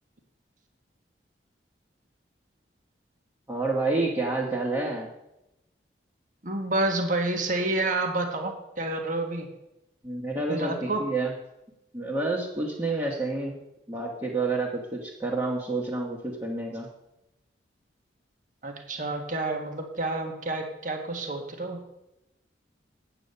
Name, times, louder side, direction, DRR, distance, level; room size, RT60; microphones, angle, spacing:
voice 1, 3.5-5.1 10.0-11.3 11.9-13.6 13.9-16.9, right 3 dB, 15° right, -3 dB, 1.4 m, -29 dB
voice 2, 6.4-9.5 10.5-11.0 18.6-21.8, right 2 dB, 45° right, 3 dB, 1.5 m, -29 dB
9.0 x 8.3 x 6.7 m, 0.89 s
head